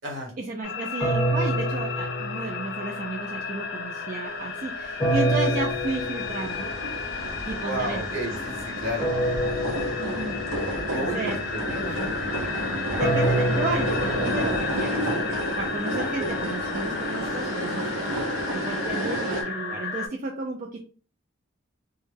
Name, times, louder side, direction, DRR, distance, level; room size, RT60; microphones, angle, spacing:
voice 1, 0.4-6.7 7.5-8.5 10.0-10.4 10.9-11.4 12.9-15.2 15.6-20.8, right 3 dB, 40° right, 0 dB, 0.3 m, -33 dB
sound 1, 0.6-20.1, left 5 dB, 55° left, 0.4 m, -33 dB
sound 2, 1.0-3.1 5.0-6.8 9.0-10.8 13.0-15.2, right 1 dB, 15° left, 0.8 m, -27 dB
sound 3, 5.1-19.4, right 1 dB, 85° right, 0.7 m, -31 dB
voice 2, 7.6-9.1 10.9-12.1, right 1 dB, 65° right, -1 dB, 1.1 m, -32 dB
2.1 x 2.1 x 3.1 m, 0.40 s
head